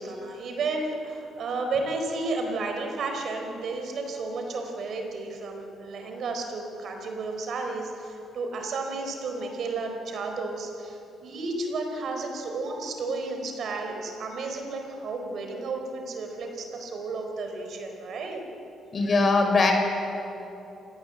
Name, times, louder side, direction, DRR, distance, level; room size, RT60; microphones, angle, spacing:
voice 1, 0.0-18.4, right 3 dB, 65° right, 4 dB, 4.4 m, -32 dB
voice 2, 18.9-19.7, left 3 dB, 40° left, 4 dB, 4.8 m, -21 dB
25.5 x 18.5 x 7.9 m, 3.0 s
cardioid pair, 90°, 0 cm